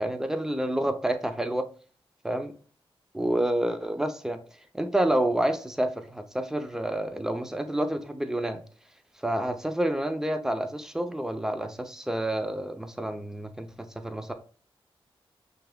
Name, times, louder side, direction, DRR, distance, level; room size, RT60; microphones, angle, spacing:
voice 1, 0.0-1.7 2.2-2.5 3.1-4.4 4.7-8.6 9.2-14.3, right 1 dB, 5° right, 0.5 m, -28 dB
5.7 x 3.3 x 2.2 m
wide cardioid pair, 105°, 10 cm